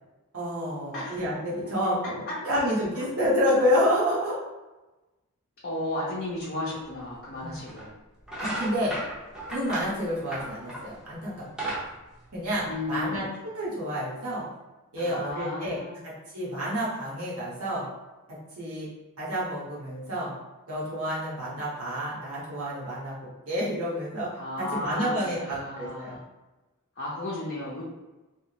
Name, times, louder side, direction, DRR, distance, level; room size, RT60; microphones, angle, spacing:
voice 1, 0.3-4.3 7.4-7.6 8.4-8.9 9.5-11.7 12.3-13.3 13.5-14.5 14.9-15.8 16.0-17.9 18.6-18.9 19.2-20.3 20.7-23.2 23.5-24.3 24.7-26.2, equal, 75° right, -7 dB, 1.2 m, -29 dB
voice 2, 5.6-7.9 12.7-13.2 15.0-15.9 24.4-26.2 27.0-27.8, left 2 dB, 45° left, -7 dB, 0.7 m, -34 dB
sound 1, 6.9-7.0 7.7-7.9 8.2-11.0 11.3-13.0, right 1 dB, 5° right, 0.7 m, -35 dB
3.4 x 2.1 x 2.8 m, 1.1 s
head